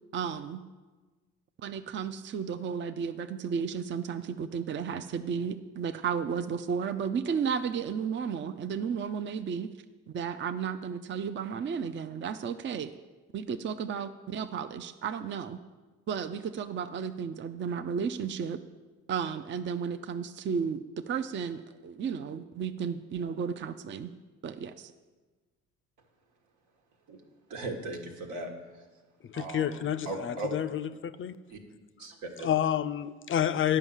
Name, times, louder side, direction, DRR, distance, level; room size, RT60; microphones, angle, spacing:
voice 1, 0.1-0.6 1.6-9.7 10.1-12.9 13.3-15.6 16.1-18.6 19.1-24.1 24.4-24.9, right 6 dB, 40° right, 10 dB, 0.5 m, -33 dB
voice 2, 27.5-28.5 29.3-30.5 31.5-31.6 32.0-32.5, right 2 dB, 80° right, 2 dB, 1.6 m, -38 dB
voice 3, 29.3-31.4 32.4-33.8, left 10 dB, 45° left, 14 dB, 0.4 m, -29 dB
9.6 x 5.6 x 7.2 m, 1.3 s
cardioid pair, 90°, 30 cm